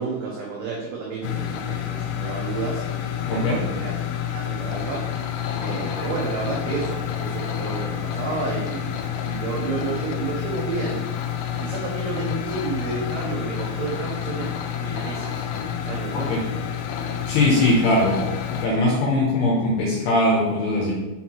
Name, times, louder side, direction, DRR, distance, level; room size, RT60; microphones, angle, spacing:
voice 1, 0.0-2.8 3.3-5.1 5.6-9.0 9.2-11.0 11.6-14.5 14.8-15.5 15.8-16.4, right 4 dB, 85° right, -3 dB, 2.2 m, -31 dB
sound 1, 1.2-18.7, left 9 dB, 90° left, 2.7 m, -29 dB
voice 2, 3.3-3.6 16.1-16.4 17.3-18.2 18.5-20.9, left 1 dB, 75° left, -3 dB, 2.6 m, -21 dB
7.0 x 4.5 x 4.4 m, 1.1 s
omnidirectional pair, 5.9 m